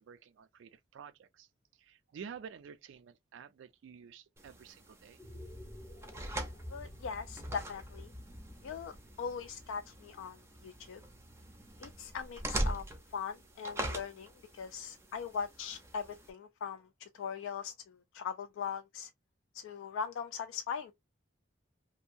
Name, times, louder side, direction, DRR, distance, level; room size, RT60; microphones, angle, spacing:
voice 1, 0.0-1.5 1.8-5.2, right 7 dB, 75° right, 0.3 m, -50 dB
sound 1, 4.4-16.3, right 1 dB, 15° right, 0.4 m, -42 dB
sound 2, 5.1-11.5, left 1 dB, 30° left, 0.7 m, -50 dB
voice 2, 6.7-8.1 8.6-11.0 11.8-12.8 13.1-19.1 19.5-20.9, left 6 dB, 85° left, 0.3 m, -40 dB
2.7 x 2.2 x 2.5 m
head